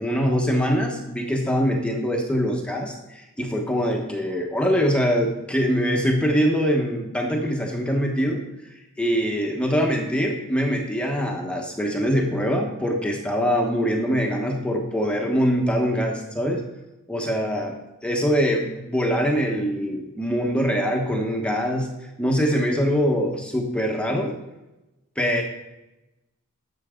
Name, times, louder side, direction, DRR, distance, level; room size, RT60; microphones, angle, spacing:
voice 1, 0.0-8.4 9.0-16.6 17.1-17.8 18.0-21.9 22.2-24.3 25.2-25.4, equal, 5° left, 1 dB, 1.1 m, -23 dB
12.0 x 6.8 x 3.7 m, 0.98 s
head